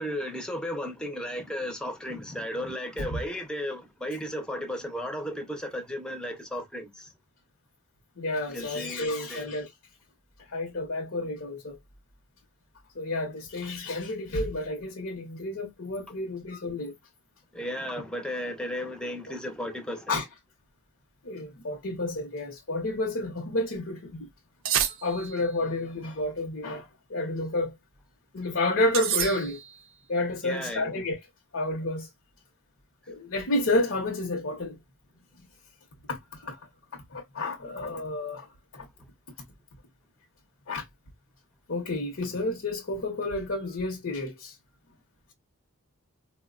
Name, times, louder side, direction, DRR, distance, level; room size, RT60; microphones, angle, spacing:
voice 1, 0.0-7.1 8.5-9.5 17.5-20.2 30.4-31.0 33.0-33.1 37.6-37.7, equal, 5° left, 0.6 m, -35 dB
voice 2, 8.2-9.7 10.5-11.8 12.9-16.9 20.1-20.2 21.2-24.3 25.0-27.7 28.3-29.6 30.1-31.2 31.5-32.1 33.1-34.8 36.1-36.6 36.9-38.5 38.7-38.9 40.7-40.8 41.7-44.6, left 2 dB, 60° left, 0.7 m, -30 dB
sound 1, 24.7-25.6 28.9-29.9, right 9 dB, 65° right, 0.5 m, -29 dB
4.3 x 2.1 x 2.3 m
head